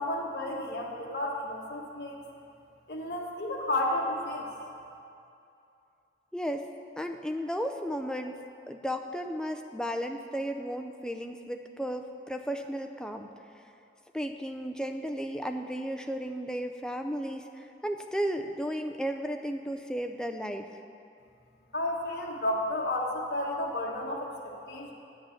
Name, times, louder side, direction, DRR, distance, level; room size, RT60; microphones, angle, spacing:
voice 1, 0.0-2.2 2.9-4.5 21.7-24.9, left 1 dB, 60° left, -3 dB, 1.5 m, -32 dB
voice 2, 6.3-6.7 7.0-13.3 14.1-20.7, equal, 5° left, 5 dB, 0.4 m, -34 dB
9.5 x 6.5 x 7.8 m, 2.6 s
head